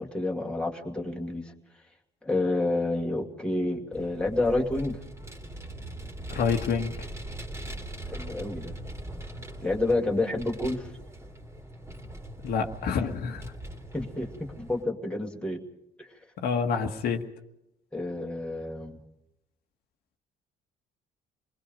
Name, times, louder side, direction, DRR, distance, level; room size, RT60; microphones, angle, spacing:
voice 1, 0.0-1.5 2.2-5.0 8.1-8.7 9.6-10.9 13.9-15.6 16.0-16.1 17.9-19.0, left 2 dB, 5° left, -1 dB, 2.5 m, -29 dB
Vehicle, 3.9-14.8, right 1 dB, 15° right, 2.8 m, -41 dB
voice 2, 6.3-6.9 12.4-13.5 16.4-17.2, left 6 dB, 65° left, 3 dB, 1.7 m, -28 dB
27.5 x 20.5 x 5.2 m, 0.85 s
cardioid pair, 110°, 17 cm